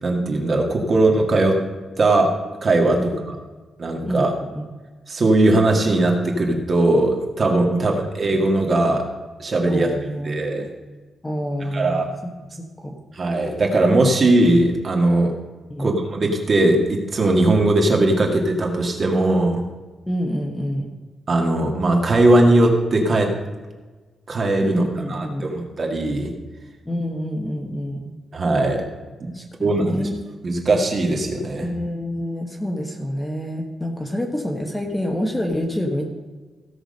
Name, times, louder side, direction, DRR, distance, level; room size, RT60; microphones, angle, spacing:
voice 1, 0.0-1.6 2.0-2.3 2.6-3.1 3.8-4.3 5.1-9.0 9.4-9.9 10.2-10.7 11.7-12.1 13.1-15.3 15.8-19.6 21.3-23.3 24.3-24.8 25.1-26.3 28.3-28.8 29.2-29.3 29.6-30.0 30.4-31.7, right 2 dB, 35° right, 1 dB, 1.9 m, -19 dB
voice 2, 4.0-4.6 7.7-7.9 9.7-10.7 11.2-12.1 12.8-13.0 15.7-15.9 20.1-20.9 24.6-25.5 26.8-28.2 29.3-30.1 31.6-36.0, equal, 10° left, 2 dB, 1.2 m, -27 dB
16.5 x 6.1 x 5.3 m, 1.3 s
wide cardioid pair, 155°, 0 cm